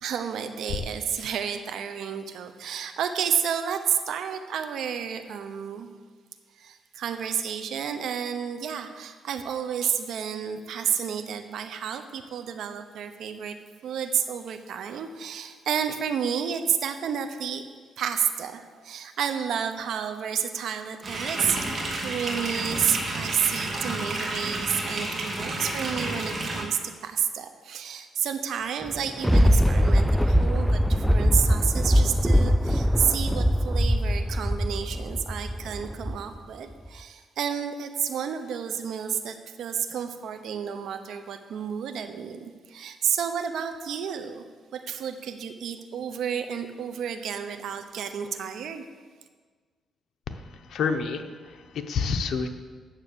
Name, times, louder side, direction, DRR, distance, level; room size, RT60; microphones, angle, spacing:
voice 1, 0.0-5.9 6.6-13.6 13.8-17.7 18.0-44.4 44.7-48.8, right 8 dB, 75° right, 8 dB, 0.8 m, -30 dB
Filling up a bath, 21.0-26.6, right 2 dB, 40° right, 2.4 m, -31 dB
Thunder, 28.8-36.4 36.9-37.0, equal, ahead, 0.3 m, -22 dB
voice 2, 50.3-52.5, left 5 dB, 70° left, 6 dB, 0.9 m, -29 dB
9.1 x 7.3 x 6.8 m, 1.5 s
cardioid pair, 90°, 0 cm